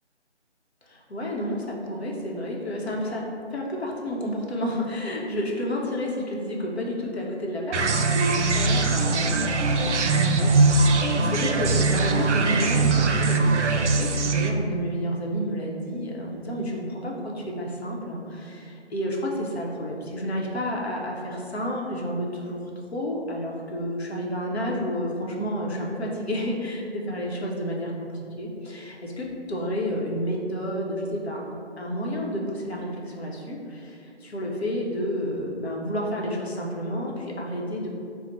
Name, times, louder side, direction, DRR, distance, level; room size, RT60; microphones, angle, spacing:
voice 1, 0.8-22.6 22.9-31.4 31.8-37.9, equal, 65° left, -2 dB, 0.8 m, -30 dB
sound 1, 7.7-14.5, right 3 dB, 80° right, 0.5 m, -21 dB
3.9 x 2.1 x 4.2 m, 2.5 s
figure-of-eight pair, 165°, 35 cm